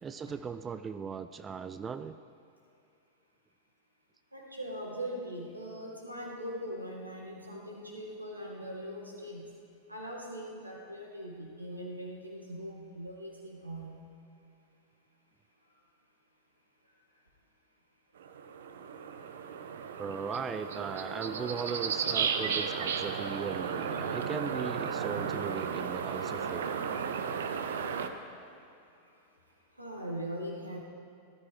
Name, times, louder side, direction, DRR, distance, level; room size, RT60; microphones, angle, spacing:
voice 1, 0.0-2.2 20.0-26.7, right 6 dB, 20° right, 11 dB, 0.3 m, -38 dB
voice 2, 4.3-9.5 9.9-13.9 29.8-30.8, equal, 85° right, -1 dB, 2.0 m, -41 dB
sound 1, 18.2-28.1, right 6 dB, 60° right, 0.7 m, -34 dB
18.0 x 13.0 x 3.3 m, 2.6 s
figure-of-eight pair, 90°, 0 cm